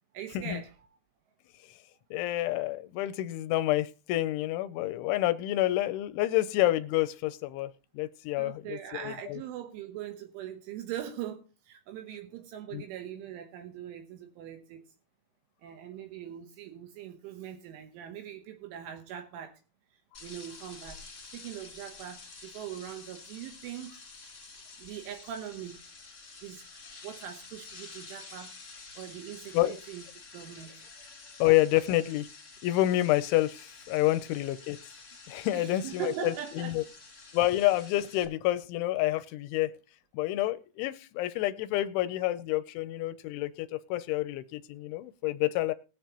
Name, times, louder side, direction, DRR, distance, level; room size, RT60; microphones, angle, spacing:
voice 1, 0.1-0.8 8.4-14.8 15.6-19.5 20.2-24.0 24.5-25.8 26.4-28.5 29.0-30.0 30.3-31.1 35.5-36.8, right 10 dB, 75° right, 3.4 m, -41 dB
voice 2, 2.1-8.8 9.0-9.4 12.7-12.8 29.5-29.8 31.4-32.3 32.6-34.8 35.3-36.8 37.3-39.7 40.1-45.7, left 15 dB, 80° left, 2.8 m, -28 dB
sound 1, 20.1-38.3, left 4 dB, 30° left, 1.7 m, -49 dB
21.5 x 7.4 x 3.0 m
omnidirectional pair, 5.9 m